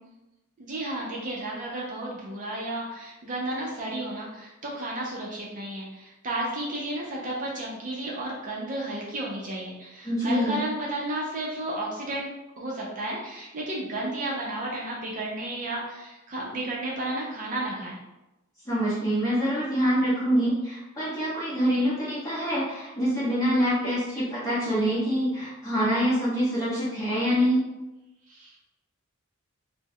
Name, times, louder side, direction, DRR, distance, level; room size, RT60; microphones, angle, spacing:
voice 1, 0.6-12.3 12.6-18.0 28.3-28.6, right 1 dB, 40° right, -3 dB, 0.5 m, -33 dB
voice 2, 10.0-10.6 18.7-27.6, equal, 15° left, -11 dB, 0.7 m, -25 dB
2.2 x 2.0 x 3.4 m, 1.0 s
head